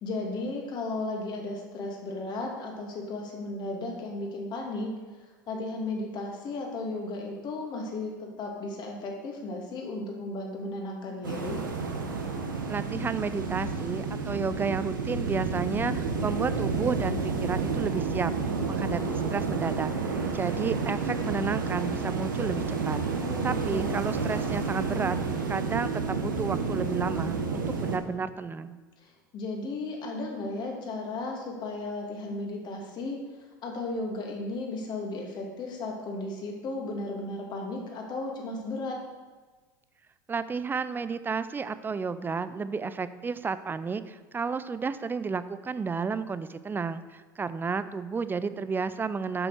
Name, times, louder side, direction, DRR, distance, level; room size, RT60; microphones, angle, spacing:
voice 1, 0.0-4.9 5.5-11.6 23.2-24.0 29.0-33.2 33.6-39.0, left 2 dB, 45° left, 0 dB, 2.4 m, -35 dB
sound 1, 11.2-28.0, right 4 dB, 85° right, 1.2 m, -30 dB
voice 2, 12.7-23.0 23.4-25.2 25.5-28.8 40.3-49.5, right 5 dB, 20° right, 13 dB, 0.5 m, -32 dB
7.8 x 6.1 x 6.4 m, 1.4 s
hypercardioid pair, 80°, 10 cm